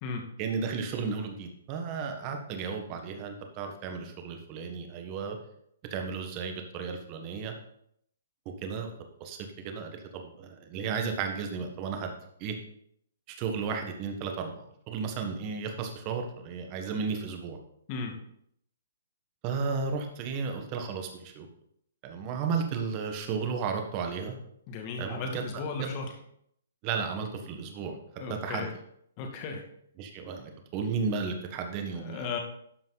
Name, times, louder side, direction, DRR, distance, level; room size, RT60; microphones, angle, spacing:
voice 1, 0.4-5.4 5.9-7.5 8.4-8.9 9.2-9.4 9.6-12.6 13.3-17.6 19.4-21.5 22.0-24.4 25.0-25.4 25.8-25.9 26.8-28.0 28.4-28.7 30.0-32.3, right 5 dB, 30° right, 4 dB, 1.7 m, -34 dB
voice 2, 24.7-26.1 28.2-28.7 29.2-29.6 31.7-32.4, left 4 dB, 35° left, 2 dB, 2.0 m, -36 dB
12.5 x 5.4 x 4.1 m, 0.71 s
hypercardioid pair, 150°, 0 cm